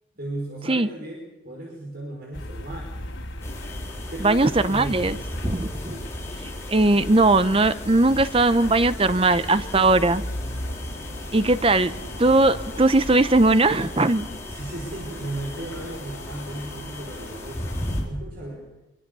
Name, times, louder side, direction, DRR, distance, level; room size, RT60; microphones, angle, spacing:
voice 1, 0.2-2.8 4.1-5.2 5.8-6.1 14.5-17.8 18.0-18.7, right 1 dB, 50° right, -1 dB, 5.3 m, -35 dB
sound 1, 2.3-18.1, left 1 dB, 75° left, 4.2 m, -37 dB
sound 2, 3.4-18.0, left 1 dB, 15° left, 4.2 m, -37 dB
voice 2, 4.2-5.2 5.4-5.7 6.7-10.2 11.3-11.9 12.2-14.3, right 2 dB, 30° right, 13 dB, 0.8 m, -19 dB
25.0 x 23.5 x 7.0 m, 0.93 s
head